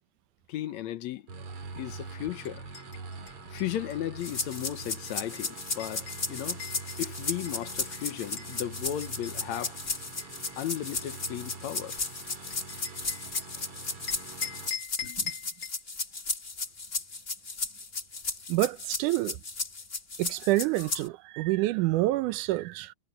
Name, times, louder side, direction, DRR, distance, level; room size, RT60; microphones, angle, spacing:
voice 1, 0.5-1.2 1.8-2.7 3.5-6.6 7.0-9.8 10.6-12.0, left 12 dB, 70° left, 2.1 m, -35 dB
sound 1, 1.3-14.7, right 4 dB, 45° right, 3.9 m, -44 dB
sound 2, 2.4-8.6 9.0-13.7 14.1-15.8, left 8 dB, 50° left, 3.0 m, -43 dB
sound 3, 4.2-21.1, left 3 dB, 25° left, 2.3 m, -35 dB
voice 2, 18.5-19.4 20.2-22.9, right 17 dB, 85° right, 2.2 m, -27 dB
omnidirectional pair, 3.5 m